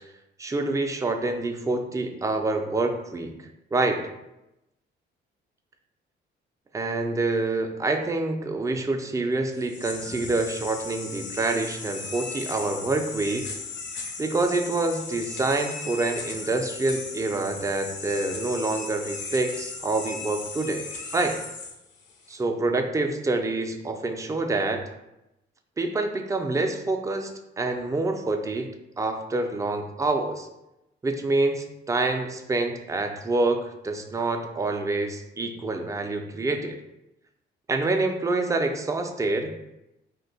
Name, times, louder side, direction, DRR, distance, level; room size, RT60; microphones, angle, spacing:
voice 1, 0.4-4.1 6.7-13.5 14.2-20.9 21.1-21.4 22.3-24.8 25.8-30.5 31.0-36.8 37.7-39.5, right 2 dB, 15° right, 5 dB, 0.3 m, -27 dB
sound 1, 9.5-22.4, left 4 dB, 65° left, 0.6 m, -37 dB
2.6 x 2.2 x 3.9 m, 0.92 s
cardioid pair, 90°, 20 cm